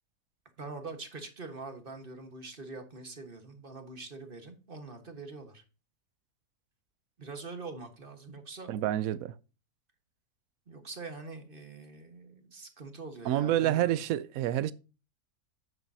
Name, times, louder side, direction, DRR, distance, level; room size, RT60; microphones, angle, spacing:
voice 1, 0.6-5.6 7.2-8.7 10.7-14.0, right 3 dB, 35° right, 1.5 m, -44 dB
voice 2, 8.7-9.3 13.2-14.7, right 12 dB, 65° right, 1.0 m, -28 dB
9.1 x 8.9 x 2.7 m
omnidirectional pair, 1.7 m